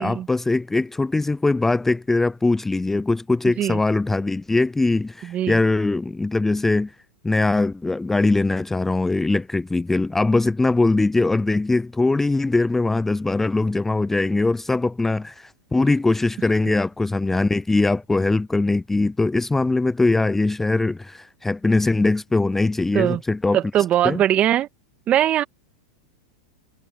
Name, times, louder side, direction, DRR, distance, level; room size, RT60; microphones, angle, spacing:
voice 1, 0.0-6.9 7.2-23.6 24.0-24.2, left 2 dB, 10° left, 0.4 m, -21 dB
voice 2, 5.2-5.6 16.7-16.8 22.9-23.2 23.5-24.7 25.1-25.4, right 11 dB, 35° right, 1.8 m, -21 dB
hypercardioid pair, 105°, 4 cm